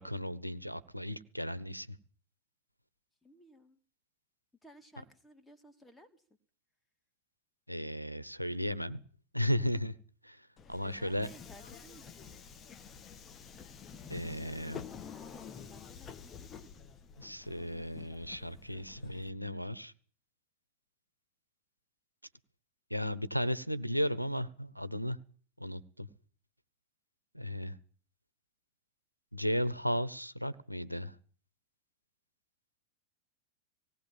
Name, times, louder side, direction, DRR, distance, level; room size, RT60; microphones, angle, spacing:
voice 1, 0.0-2.0 7.7-9.0 9.3-10.0 10.2-11.3 14.1-14.8 17.2-19.9 22.9-25.2 25.6-26.1 27.3-27.8 29.3-31.2, equal, 90° right, 18 dB, 1.2 m, -35 dB
voice 2, 3.2-3.8 4.6-6.2 10.8-12.5 15.1-16.6 17.4-17.5, equal, 5° left, 7 dB, 2.8 m, -57 dB
Subway metro underground, 10.6-19.3, left 7 dB, 25° left, 1.9 m, -49 dB
19.0 x 18.5 x 7.5 m, 0.44 s
figure-of-eight pair, 90°, 0 cm